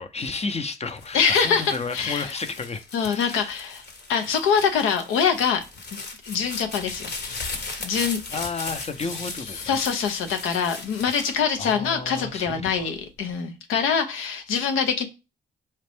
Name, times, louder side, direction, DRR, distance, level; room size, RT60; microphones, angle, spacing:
voice 1, 0.0-3.5 8.3-9.7 11.2-12.9, left 4 dB, 30° left, 0.6 m, -32 dB
sound 1, 0.9-12.2 12.8-13.3, left 3 dB, 55° left, 1.0 m, -37 dB
voice 2, 1.1-2.3 2.9-3.8 4.1-5.6 5.9-6.0 6.2-8.2 9.6-15.1, left 6 dB, 90° left, 0.7 m, -24 dB
4.3 x 2.5 x 3.4 m
supercardioid pair, 60°, 20 cm